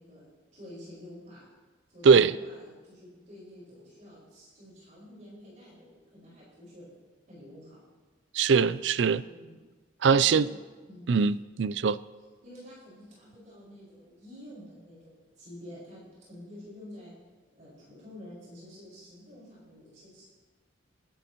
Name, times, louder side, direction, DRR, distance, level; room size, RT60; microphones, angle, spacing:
voice 1, 0.0-1.5 1.9-6.9 7.3-7.8 9.2-9.6 10.1-10.6 10.9-11.1 12.4-17.1 17.5-20.2, left 1 dB, 40° right, -7 dB, 5.1 m, -49 dB
voice 2, 2.0-2.4 8.3-9.2 10.0-10.5 11.1-12.0, right 5 dB, 70° right, 17 dB, 0.4 m, -21 dB
23.0 x 12.0 x 3.0 m, 1.3 s
head